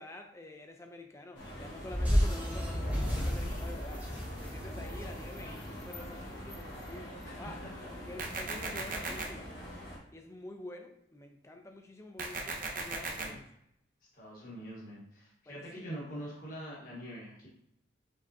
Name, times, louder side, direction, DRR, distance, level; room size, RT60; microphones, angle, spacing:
voice 1, 0.0-4.1 4.4-7.6 8.1-9.5 10.1-13.5 15.5-15.9, left 2 dB, 15° left, 4 dB, 0.4 m, -48 dB
sound 1, 1.3-10.0, equal, 70° left, 1.6 m, -45 dB
sound 2, 1.9-6.3, equal, 10° right, 1.0 m, -32 dB
sound 3, 8.2-9.2 12.2-13.2, right 3 dB, 45° right, 0.7 m, -37 dB
voice 2, 14.1-17.5, equal, 45° left, -5 dB, 1.2 m, -44 dB
5.3 x 3.4 x 2.6 m, 0.78 s
head